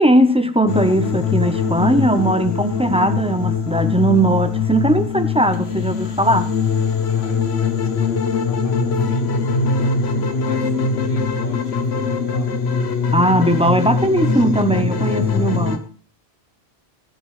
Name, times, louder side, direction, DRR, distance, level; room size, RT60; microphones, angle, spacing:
voice 1, 0.0-6.5 13.1-15.8, right 1 dB, 5° right, 0.7 m, -18 dB
sound 1, 0.7-15.8, left 5 dB, 75° left, 1.3 m, -21 dB
voice 2, 7.1-10.7 11.0-12.6 13.7-14.4, left 1 dB, 55° left, 2.3 m, -42 dB
19.0 x 9.4 x 3.3 m
omnidirectional pair, 1.1 m